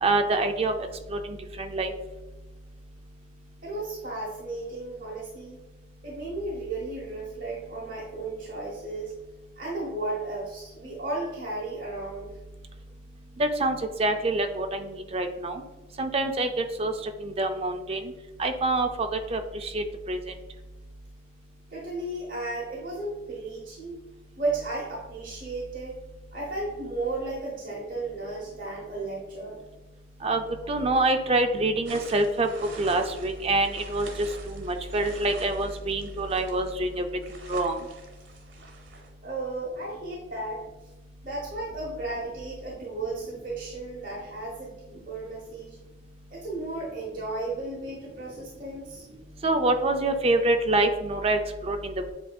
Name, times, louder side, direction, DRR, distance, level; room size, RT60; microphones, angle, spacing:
voice 1, 0.0-1.9 13.4-15.6 16.0-18.0 18.4-20.2 30.2-30.4 30.7-32.5 32.8-34.1 34.5-37.1 37.5-37.8 49.4-52.1, right 2 dB, 30° right, 6 dB, 0.4 m, -26 dB
voice 2, 3.6-5.6 6.0-9.1 9.6-12.3 21.7-24.0 24.4-26.0 26.3-29.6 39.2-40.6 41.2-45.8 46.3-49.0, right 2 dB, 50° right, -5 dB, 1.0 m, -34 dB
sound 1, 31.9-39.1, right 3 dB, 80° right, 0.9 m, -46 dB
7.6 x 2.6 x 2.3 m, 1.1 s
head